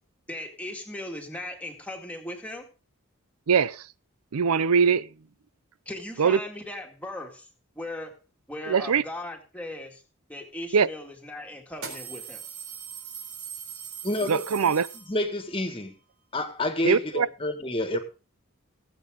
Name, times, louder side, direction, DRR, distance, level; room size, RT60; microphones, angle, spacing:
voice 1, 0.3-2.7 5.9-7.5 7.8-8.2 8.5-10.0 10.3-12.4, left 1 dB, 5° left, 2.0 m, -38 dB
voice 2, 3.5-3.9 4.3-5.1 6.2-6.4 8.7-9.0 10.7-10.9 14.3-14.9 16.8-17.3, right 6 dB, 85° right, 0.5 m, -22 dB
sound 1, 10.6-10.7 11.7-15.5, right 7 dB, 70° right, 4.0 m, -40 dB
voice 3, 14.0-14.4 15.1-15.9 16.3-18.0, left 1 dB, 25° left, 1.7 m, -28 dB
19.0 x 8.2 x 3.8 m
head